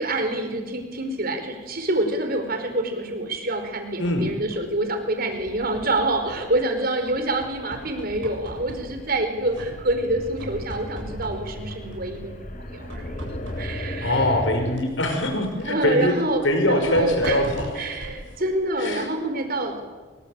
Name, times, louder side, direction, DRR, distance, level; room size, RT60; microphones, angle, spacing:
voice 1, 0.0-12.4 12.7-13.0 13.6-14.3 15.7-17.4 17.7-19.8, right 1 dB, 50° right, 7 dB, 4.7 m, -26 dB
sound 1, 3.6-4.8 5.3-6.7 7.1-9.2 9.5-10.1 10.4-12.3 12.9-14.0 14.7-19.2, equal, 75° right, 7.9 m, -40 dB
voice 2, 4.0-4.4 14.0-16.1 16.4-17.8 18.8-19.1, left 1 dB, 70° left, 6 dB, 5.9 m, -23 dB
sound 2, 5.8-14.8, left 1 dB, 40° left, 3.3 m, -37 dB
25.5 x 24.5 x 9.0 m, 1.3 s
head